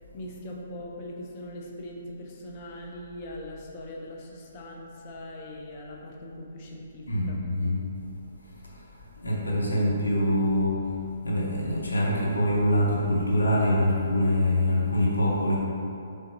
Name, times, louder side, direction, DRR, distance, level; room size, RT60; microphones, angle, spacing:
voice 1, 0.1-7.4, left 1 dB, 35° left, -1 dB, 0.5 m, -41 dB
voice 2, 7.1-7.8 9.2-10.8 11.2-15.6, left 1 dB, 75° left, -4 dB, 0.7 m, -24 dB
3.9 x 3.4 x 2.7 m, 2.6 s
figure-of-eight pair, 130°, 0 cm